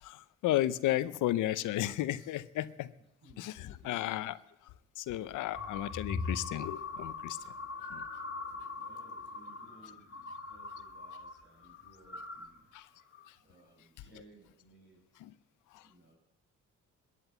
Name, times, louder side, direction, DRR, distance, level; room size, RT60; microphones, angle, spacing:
voice 1, 0.0-2.9 3.4-4.4 5.0-7.4 7.9-8.0 12.7-12.9 15.2-15.3 15.7-15.8, left 14 dB, 85° left, 15 dB, 0.7 m, -33 dB
voice 2, 3.2-4.0 8.8-12.7 13.1-15.2 15.8-16.2, right 2 dB, 40° right, 2 dB, 6.4 m, -61 dB
sound 1, 5.5-11.3 11.6-12.5 13.0-13.3, left 3 dB, 40° left, 2.0 m, -41 dB
14.0 x 9.3 x 8.0 m, 0.83 s
cardioid pair, 75°, 30 cm